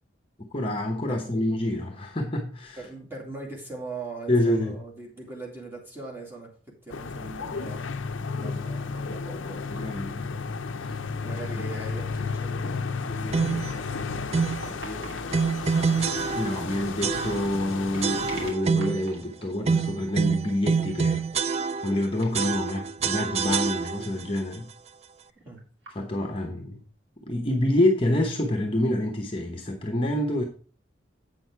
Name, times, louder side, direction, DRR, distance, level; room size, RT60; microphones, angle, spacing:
voice 1, 0.5-2.8 4.3-4.8 9.7-10.4 10.8-10.9 16.4-21.2 21.8-24.7 25.9-26.8 27.3-30.4, left 1 dB, 30° left, 0.9 m, -27 dB
voice 2, 2.7-6.5 6.8-7.8 8.3-9.9 11.2-15.3 25.4-25.6, right 2 dB, 10° right, 2.5 m, -41 dB
sound 1, 6.9-18.5, left 4 dB, 80° left, 0.6 m, -33 dB
sound 2, 12.2-12.6 14.1-16.2 17.6-19.8 21.7-23.4 25.2-26.5 26.8-26.9 28.0-28.5, right 2 dB, 70° right, 2.7 m, -48 dB
sound 3, 13.3-13.7 14.3-14.7 15.3-16.7 17.0-17.6 18.0-19.1 19.6-22.0 22.3-24.2, right 5 dB, 35° right, 0.3 m, -26 dB
8.2 x 6.3 x 4.6 m
head